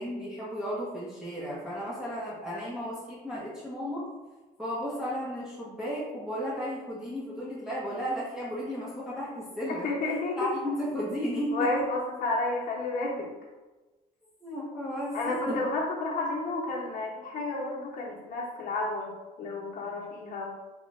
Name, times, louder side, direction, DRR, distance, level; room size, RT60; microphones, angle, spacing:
voice 1, 0.0-4.1 4.6-9.9 10.4-11.7 14.4-15.6, equal, 5° right, -8 dB, 0.8 m, -34 dB
voice 2, 9.7-10.5 11.5-13.3 15.1-19.1 19.4-20.5, left 2 dB, 55° left, -3 dB, 1.0 m, -31 dB
3.8 x 2.5 x 3.2 m, 1.2 s
cardioid pair, 110°, 17 cm